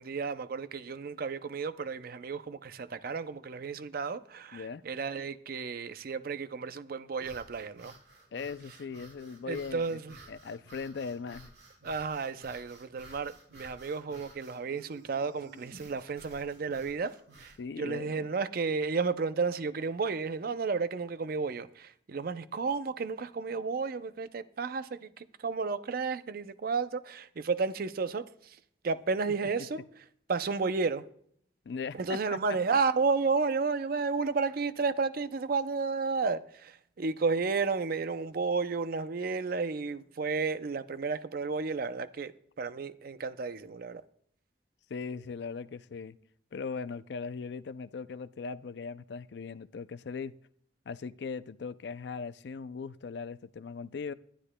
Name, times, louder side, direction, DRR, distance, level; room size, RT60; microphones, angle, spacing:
voice 1, 0.0-7.9 9.5-10.2 11.8-28.6 28.8-29.8 30.3-31.1 31.9-44.0, right 4 dB, 55° right, 0.5 m, -32 dB
voice 2, 4.5-4.8 8.3-10.0 10.3-11.5 17.6-18.3 31.7-32.4 44.9-46.2 46.5-50.3 50.9-54.1, left 5 dB, 65° left, 0.4 m, -39 dB
sound 1, 7.1-17.6, right 1 dB, 85° right, 4.2 m, -54 dB
19.5 x 11.5 x 2.2 m
head